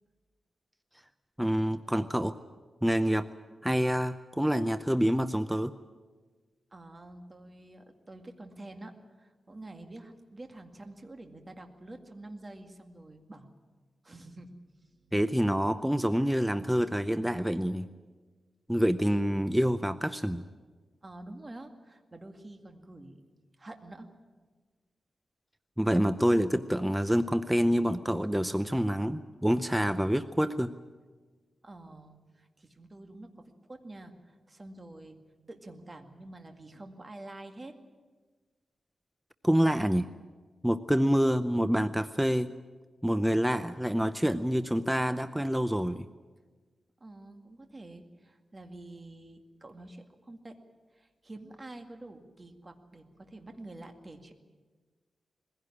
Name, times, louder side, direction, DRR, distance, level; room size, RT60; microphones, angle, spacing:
voice 1, 1.4-2.4 2.8-3.3 3.6-5.7 15.1-17.9 18.7-20.4 25.8-30.7 39.4-40.1 40.6-42.5 43.0-46.1, equal, 5° right, 11 dB, 0.6 m, -27 dB
voice 2, 6.7-13.5 14.0-14.6 14.9-15.2 21.0-23.2 23.6-24.1 31.6-35.2 35.5-37.7 47.0-50.6 50.9-54.3, right 2 dB, 25° right, 5 dB, 2.0 m, -48 dB
21.0 x 16.0 x 9.8 m, 1.4 s
wide cardioid pair, 110°, 0 cm